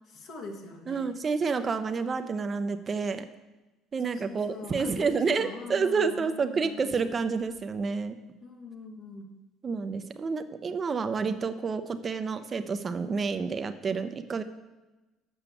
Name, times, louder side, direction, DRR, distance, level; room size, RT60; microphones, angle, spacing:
voice 1, 0.1-1.1 4.0-7.1 8.4-9.3, left 3 dB, 60° left, 2 dB, 1.6 m, -43 dB
voice 2, 0.9-3.3 3.9-8.2 9.6-14.4, right 5 dB, 35° right, 10 dB, 0.7 m, -29 dB
7.1 x 5.7 x 7.0 m, 1.1 s
supercardioid pair, 85°, 0 cm